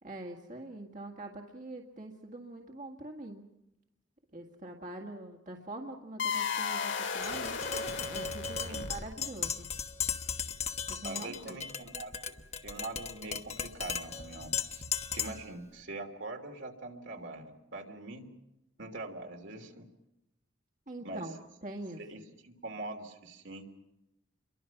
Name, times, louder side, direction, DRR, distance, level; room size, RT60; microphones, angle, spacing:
voice 1, 0.0-3.4 4.3-7.6 8.1-9.7 10.9-11.6 20.9-21.4 21.6-22.0, right 2 dB, 40° right, 1 dB, 1.9 m, -44 dB
sound 1, 6.2-9.3, left 6 dB, 70° left, 2.3 m, -35 dB
Tap, 7.2-15.5, left 7 dB, 35° left, 1.2 m, -37 dB
voice 2, 11.0-12.3 12.6-14.8 15.1-18.2 18.8-19.9 21.0-21.3 22.0-23.6, right 2 dB, 70° right, 3 dB, 3.1 m, -43 dB
29.5 x 23.5 x 6.0 m, 0.90 s
head